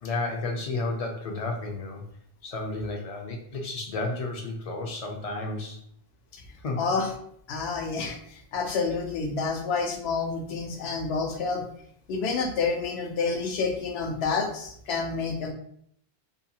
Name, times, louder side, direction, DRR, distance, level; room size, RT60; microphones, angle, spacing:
voice 1, 0.0-2.0 2.4-5.8 6.6-6.8, left 2 dB, 50° left, 1 dB, 0.5 m, -32 dB
voice 2, 6.8-7.1 7.5-11.6 12.1-15.5, left 4 dB, 85° left, 2 dB, 0.8 m, -29 dB
2.6 x 2.2 x 2.7 m, 0.67 s
omnidirectional pair, 1.0 m